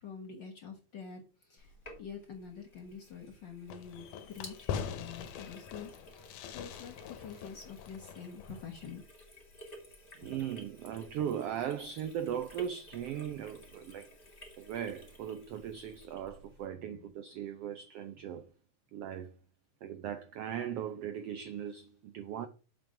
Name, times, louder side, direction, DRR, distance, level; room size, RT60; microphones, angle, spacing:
voice 1, 0.0-1.2 1.5-1.7 2.0-4.6 4.9-9.0, left 6 dB, 50° left, 1.4 m, -46 dB
Sink (filling or washing), 1.6-16.7, left 1 dB, 20° left, 2.0 m, -54 dB
Fireworks, 3.7-8.9, left 7 dB, 85° left, 2.4 m, -42 dB
voice 2, 10.2-14.1 14.6-18.5 18.9-19.4 19.8-22.5, right 9 dB, 85° right, 1.3 m, -38 dB
7.4 x 5.1 x 6.0 m
omnidirectional pair, 3.6 m